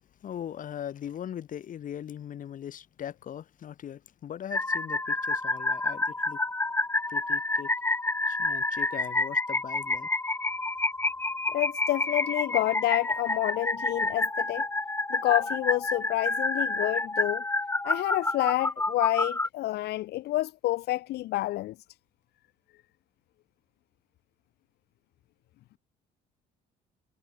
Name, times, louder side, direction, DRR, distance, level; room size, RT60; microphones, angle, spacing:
voice 1, 0.2-6.4 7.1-7.7 8.3-10.1, left 10 dB, 50° left, 2.8 m, -40 dB
sound 1, 4.5-19.5, left 2 dB, 15° left, 3.0 m, -29 dB
voice 2, 11.5-14.7 15.1-17.4 17.8-21.7, left 16 dB, 75° left, 1.4 m, -28 dB
cardioid pair, 110°, 17 cm